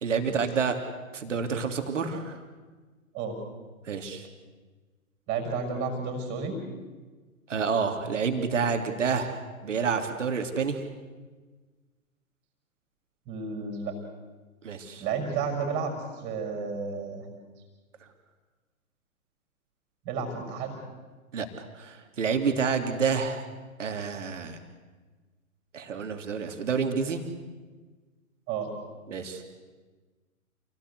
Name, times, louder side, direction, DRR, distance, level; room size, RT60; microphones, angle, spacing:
voice 1, 0.0-0.8 1.1-2.4 3.9-4.3 7.5-9.4 9.6-10.8 14.6-15.0 21.3-21.5 21.8-23.4 23.8-24.6 25.7-27.2 29.1-29.4, right 5 dB, 55° right, 7 dB, 3.0 m, -28 dB
voice 2, 5.3-6.6 13.3-14.0 15.0-15.9 16.2-17.3 20.1-20.8 28.5-28.7, right 5 dB, 25° right, 4 dB, 5.5 m, -31 dB
28.0 x 18.0 x 8.2 m, 1.4 s
figure-of-eight pair, 115°, 43 cm